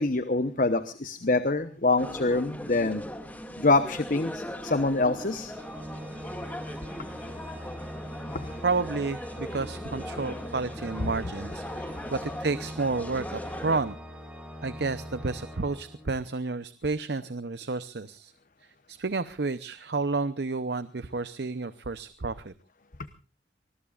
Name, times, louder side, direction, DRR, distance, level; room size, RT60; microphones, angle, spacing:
voice 1, 0.0-3.0 3.6-5.5 8.3-8.6, left 3 dB, 45° left, 11 dB, 1.0 m, -25 dB
sound 1, 2.0-13.8, equal, 10° left, 2.1 m, -39 dB
Organ, 5.5-16.4, equal, 5° right, 5.3 m, -42 dB
voice 2, 8.6-14.0 14.6-18.3 18.9-22.5, right 3 dB, 60° right, 14 dB, 0.7 m, -31 dB
25.0 x 21.0 x 2.5 m, 0.33 s
head